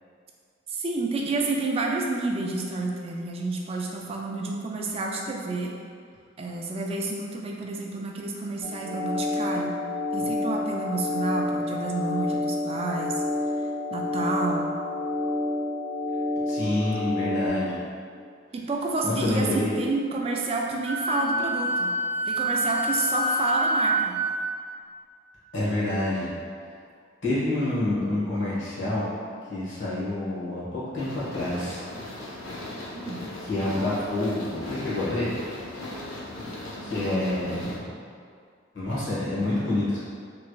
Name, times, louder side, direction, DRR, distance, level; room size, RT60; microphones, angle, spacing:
voice 1, 0.7-5.7 6.4-9.8 10.1-13.2 13.9-14.7 18.5-21.9 22.3-24.1 32.9-33.3 36.8-37.8, right 3 dB, 30° right, 0 dB, 0.3 m, -29 dB
sound 1, 8.6-17.5, left 2 dB, 5° left, 1.2 m, -29 dB
voice 2, 16.5-17.8 19.0-19.7 25.5-26.3 27.2-29.0 29.5-31.8 33.4-35.3 36.8-37.8 38.7-40.0, left 2 dB, 70° left, -9 dB, 1.2 m, -27 dB
Wind instrument woodwind instrument, 20.8-24.3, right 1 dB, 10° right, 0.7 m, -26 dB
sound 2, 31.0-37.8, left 1 dB, 90° left, 0.6 m, -38 dB
3.3 x 3.0 x 2.3 m, 2.2 s
head